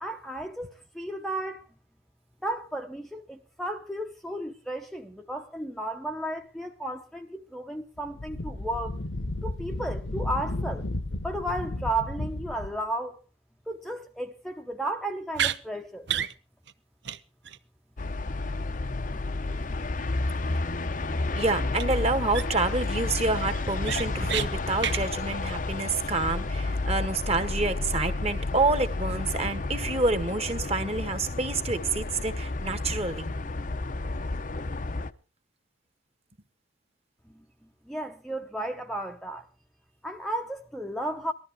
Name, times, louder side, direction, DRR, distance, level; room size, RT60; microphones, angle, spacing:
voice 1, 0.0-1.7 2.4-9.0 9.4-10.9 11.2-13.2 13.7-16.1 37.3-37.4 37.9-39.5 40.0-41.3, right 1 dB, ahead, 0.9 m, -34 dB
Wind, 8.0-12.8, left 1 dB, 80° left, 1.4 m, -33 dB
sound 1, 15.3-15.6 16.1-16.3 16.7-16.8 17.1-17.2 17.5-17.6 21.7-21.9 22.3-22.7 23.1-23.2 23.5-24.5 24.8-25.0, right 9 dB, 65° right, 0.8 m, -29 dB
sound 2, 18.0-35.1, left 2 dB, 45° left, 0.8 m, -31 dB
voice 2, 21.3-33.3, right 3 dB, 35° right, 1.6 m, -28 dB
20.0 x 13.5 x 3.5 m
head